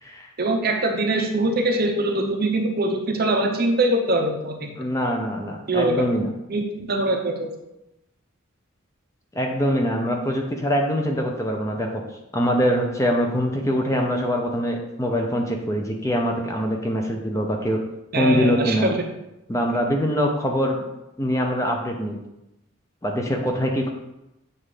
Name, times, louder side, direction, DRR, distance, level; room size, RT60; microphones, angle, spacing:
voice 1, 0.4-4.7 5.7-6.0 6.5-7.5 18.1-19.0, right 1 dB, 45° right, 2 dB, 0.8 m, -23 dB
voice 2, 4.8-6.3 9.3-12.0 12.3-17.8 18.1-18.9 19.5-20.8 21.2-22.2 23.0-23.9, equal, 15° left, 1 dB, 0.5 m, -23 dB
7.5 x 2.5 x 4.9 m, 0.91 s
head